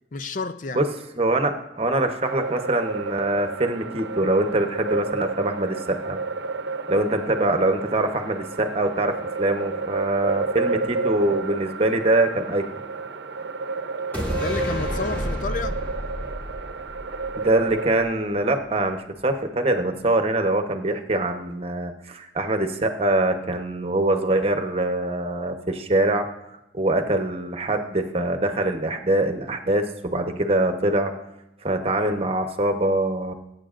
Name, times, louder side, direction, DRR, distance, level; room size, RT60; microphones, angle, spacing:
voice 1, 0.1-0.8 14.4-15.8, left 3 dB, 45° left, 11 dB, 0.5 m, -30 dB
voice 2, 1.2-6.2 6.9-12.6 17.4-26.3 26.7-31.1 31.6-33.3, right 2 dB, 35° right, 6 dB, 1.0 m, -23 dB
sound 1, 2.2-18.1, right 4 dB, 75° right, 0.8 m, -31 dB
sound 2, 14.1-17.7 18.0-18.1, equal, 10° left, 2.7 m, -30 dB
22.0 x 9.4 x 2.5 m, 0.88 s
head